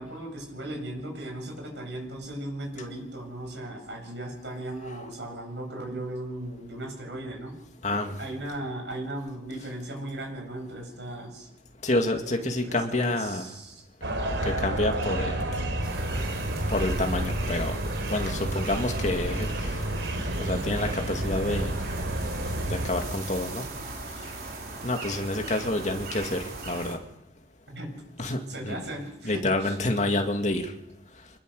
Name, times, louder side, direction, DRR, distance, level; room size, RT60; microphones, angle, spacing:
voice 1, 0.0-7.6 7.9-11.5 12.4-13.8 14.4-14.8 15.9-16.0 27.7-28.0 28.5-29.7, right 1 dB, 70° right, 2 dB, 7.9 m, -37 dB
voice 2, 7.8-8.2 11.8-13.5 14.5-15.6 16.7-17.8 18.1-19.8 20.4-21.8 22.7-23.7 24.8-27.0 28.2-28.9 29.2-30.7, left 1 dB, 40° left, 4 dB, 2.5 m, -28 dB
sound 1, 14.0-22.9, right 1 dB, 90° right, 3.5 m, -30 dB
sound 2, 15.8-26.9, right 2 dB, 55° right, 4.6 m, -38 dB
25.5 x 20.5 x 6.7 m, 0.83 s
head